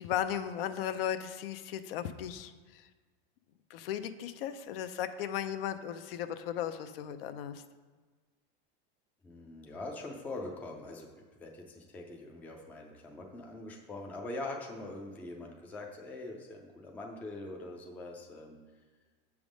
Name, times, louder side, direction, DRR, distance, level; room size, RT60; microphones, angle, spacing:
voice 1, 0.0-2.9 3.7-7.6, left 10 dB, 70° left, 10 dB, 0.6 m, -36 dB
voice 2, 9.2-18.6, left 2 dB, 5° left, 0 dB, 0.4 m, -43 dB
7.0 x 3.6 x 6.2 m, 1.4 s
supercardioid pair, 160°, 30 cm